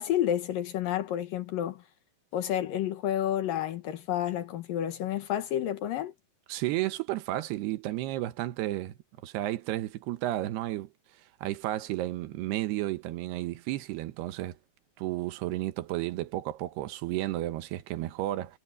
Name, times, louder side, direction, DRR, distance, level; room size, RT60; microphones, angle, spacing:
voice 1, 0.0-1.8 2.3-6.1, left 11 dB, 65° left, 2.5 m, -30 dB
voice 2, 6.5-8.9 9.2-10.9 11.4-14.6 15.0-18.6, right 15 dB, 80° right, 3.0 m, -32 dB
omnidirectional pair, 4.7 m